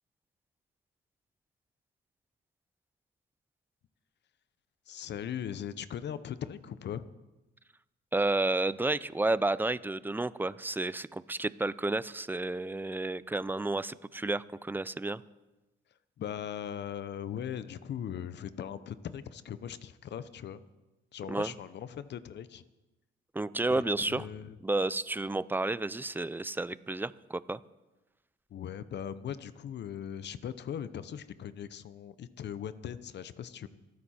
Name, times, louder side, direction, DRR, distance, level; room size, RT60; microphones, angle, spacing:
voice 1, 4.9-7.1 16.2-20.6 21.1-22.6 23.7-23.8 24.1-24.6 28.5-33.7, left 9 dB, 60° left, 14 dB, 0.8 m, -39 dB
voice 2, 8.1-15.2 21.3-21.5 23.3-24.3 24.6-27.6, right 2 dB, 10° right, 18 dB, 0.4 m, -31 dB
25.5 x 9.5 x 4.4 m, 1.1 s
cardioid pair, 90°, 20 cm